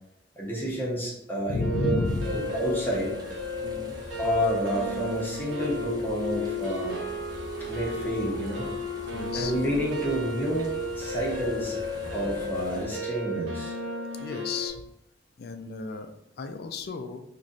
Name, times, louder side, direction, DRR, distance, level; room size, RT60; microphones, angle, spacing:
voice 1, 0.4-2.0 2.2-3.1 4.2-7.0 7.7-8.7 9.3-11.8 12.1-13.7, equal, 10° left, -5 dB, 0.7 m, -29 dB
voice 2, 1.5-2.5 3.6-4.0 9.1-9.6 14.2-14.8 15.4-17.2, left 3 dB, 55° left, 7 dB, 0.4 m, -32 dB
sound 1, 1.6-14.7, left 1 dB, 80° right, 0.9 m, -34 dB
sound 2, 2.0-12.9, right 1 dB, 20° right, 0.5 m, -45 dB
3.1 x 2.5 x 3.9 m, 0.77 s
head